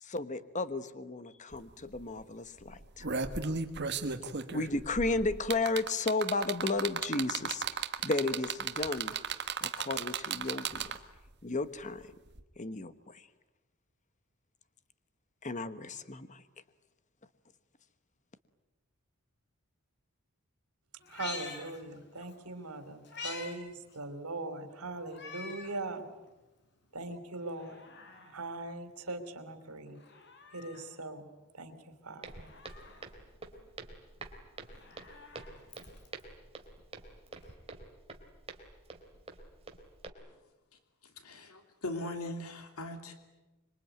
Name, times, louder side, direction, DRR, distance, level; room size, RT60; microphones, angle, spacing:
voice 1, 0.0-3.1 4.5-7.6 8.0-9.1 9.6-10.8 11.4-12.1 12.6-13.3 15.4-16.4, left 3 dB, 35° left, 12 dB, 1.2 m, -33 dB
sound 1, 1.5-1.6 1.9-2.2 2.7-11.2 12.3-12.4, right 6 dB, 50° right, 1.6 m, -35 dB
Meow, 21.0-22.3 22.7-23.6 23.9-24.0 25.1-25.8 26.3-26.4 27.4-28.4 29.9-30.9 32.2-33.1 34.5-36.2 37.4-37.5, left 4 dB, 50° left, 4.3 m, -46 dB
voice 2, 21.1-26.0 26.9-27.8 28.3-30.0 30.5-31.3 31.5-31.7 32.0-32.5, right 2 dB, 90° right, 9 dB, 3.6 m, -40 dB
Walk footsteps, 32.2-40.1, right 3 dB, 25° right, 3.2 m, -48 dB
voice 3, 41.2-43.1, left 1 dB, 80° left, 6 dB, 2.8 m, -40 dB
26.0 x 23.0 x 9.4 m, 1.1 s
head